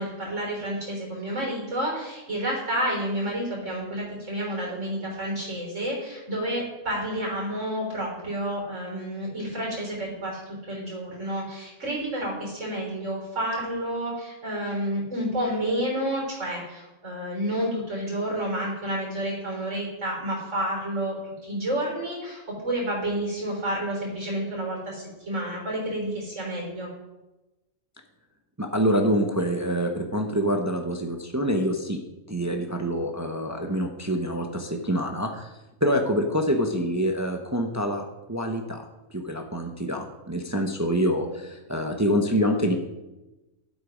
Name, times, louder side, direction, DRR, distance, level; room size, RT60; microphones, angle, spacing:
voice 1, 0.0-26.9, right 1 dB, 65° right, -2 dB, 4.3 m, -30 dB
voice 2, 28.6-32.0 32.3-35.5 35.8-38.8 39.1-42.8, equal, 15° right, 3 dB, 0.7 m, -26 dB
10.5 x 8.3 x 5.1 m, 1.0 s
omnidirectional pair, 1.4 m